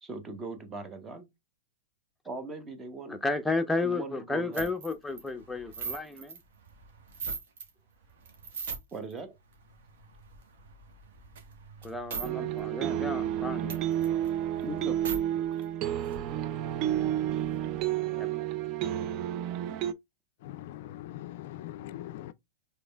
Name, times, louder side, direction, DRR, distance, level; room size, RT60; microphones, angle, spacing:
voice 1, 0.0-1.3 2.2-3.2 3.8-4.7 8.9-9.4 14.6-16.0, right 3 dB, 20° right, 0.9 m, -40 dB
voice 2, 3.1-6.4 11.8-13.8 18.2-18.3, left 3 dB, 5° left, 0.7 m, -32 dB
sound 1, 4.5-7.7 8.1-9.1 9.5-12.3 12.6-12.7 13.0-15.2 15.6-15.7 15.9-17.9, right 5 dB, 65° right, 1.2 m, -42 dB
sound 2, 12.2-19.9, right 11 dB, 40° right, 0.4 m, -30 dB
voice 3, 20.4-22.3, left 13 dB, 55° left, 0.3 m, -41 dB
5.1 x 3.3 x 2.3 m
hypercardioid pair, 110°, 0 cm